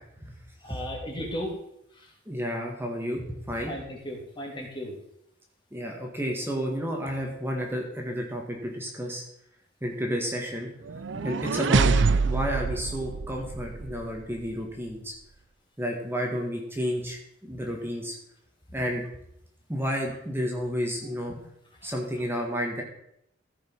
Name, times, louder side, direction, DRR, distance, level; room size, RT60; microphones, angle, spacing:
voice 1, 0.6-1.5 3.7-4.9 17.5-17.6 21.8-21.9, equal, 25° left, -1 dB, 2.8 m, -35 dB
voice 2, 2.2-3.7 5.7-9.2 9.8-10.7 11.2-15.1 15.8-18.1 18.7-19.0 19.7-21.4 21.8-22.8, equal, 10° right, 0 dB, 1.7 m, -31 dB
sound 1, 10.9-14.0, right 4 dB, 60° right, 0.5 m, -25 dB
15.0 x 5.5 x 5.5 m, 0.75 s
head